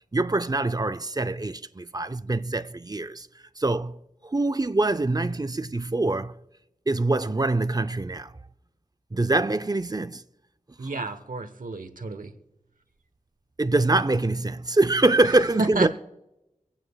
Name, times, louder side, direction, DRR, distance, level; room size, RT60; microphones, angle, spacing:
voice 1, 0.1-3.3 3.6-4.0 4.2-6.4 6.9-8.3 9.1-10.2 13.6-15.9, right 2 dB, 30° right, 0.5 m, -24 dB
voice 2, 10.8-12.3 15.6-15.9, right 3 dB, 90° right, 1.0 m, -31 dB
25.0 x 8.9 x 2.3 m
wide cardioid pair, 40°, 14 cm